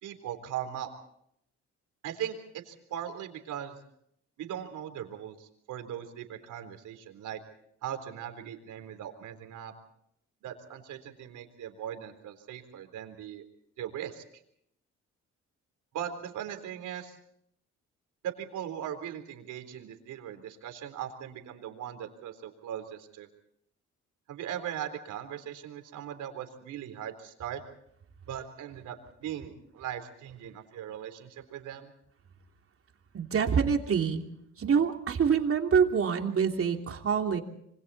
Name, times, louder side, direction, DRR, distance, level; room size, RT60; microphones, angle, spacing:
voice 1, 0.0-0.9 2.0-3.8 4.4-7.4 7.8-9.7 10.4-13.4 13.8-14.2 15.9-17.2 18.2-23.3 24.3-27.6 28.3-31.9, right 10 dB, 85° right, 6 dB, 3.9 m, -39 dB
voice 2, 33.1-34.2 34.6-37.4, right 6 dB, 45° right, 4 dB, 3.1 m, -26 dB
27.0 x 25.0 x 4.2 m, 0.71 s
cardioid pair, 90°, 30 cm